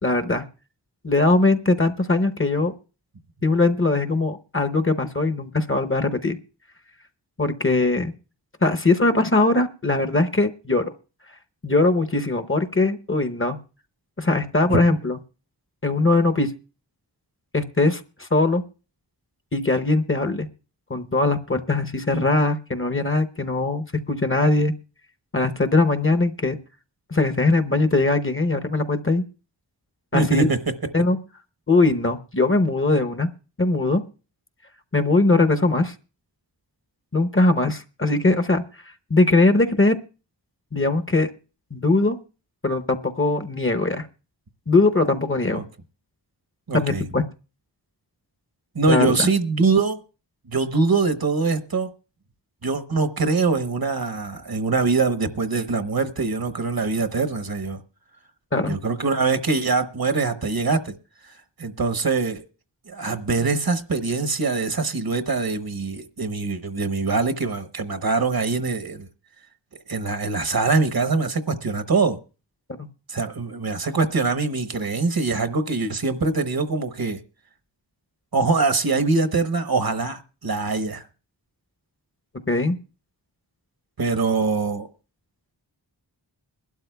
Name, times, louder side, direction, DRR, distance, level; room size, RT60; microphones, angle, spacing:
voice 1, 0.0-0.4 1.0-2.7 3.4-6.4 7.4-8.1 8.6-10.9 11.6-13.6 14.2-15.2 15.8-16.5 17.5-18.6 19.5-20.5 20.9-24.7 25.3-26.6 27.1-29.2 30.1-30.5 30.9-31.2 31.7-33.3 33.6-34.0 34.9-35.9 37.1-38.6 39.1-39.9 40.7-41.3 41.7-42.2 42.6-44.1 44.7-45.6 46.7-47.2 48.9-49.3 58.5-58.8 72.8-72.9 82.5-82.8, left 2 dB, 30° left, 0.8 m, -21 dB
voice 2, 30.1-30.6 45.5-45.6 46.7-47.0 48.7-50.0 50.5-51.9 52.6-57.8 58.7-60.9 61.6-62.4 62.9-69.1 69.9-72.2 73.1-77.2 78.3-81.0 84.0-84.9, right 4 dB, 55° right, 1.0 m, -23 dB
22.5 x 12.0 x 2.2 m
wide cardioid pair, 55°, 43 cm